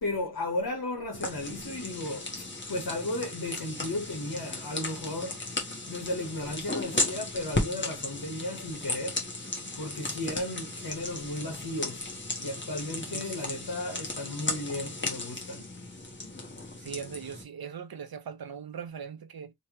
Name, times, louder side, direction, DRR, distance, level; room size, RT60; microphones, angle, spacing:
voice 1, 0.0-5.5 5.9-9.2 9.8-12.1 12.4-15.7, left 1 dB, 75° left, 1.4 m, -35 dB
sound 1, 1.1-17.4, left 2 dB, 30° left, 1.2 m, -35 dB
voice 2, 13.1-13.6 16.8-19.5, right 7 dB, 75° right, 0.7 m, -40 dB
3.3 x 3.0 x 3.0 m
wide cardioid pair, 65°, 37 cm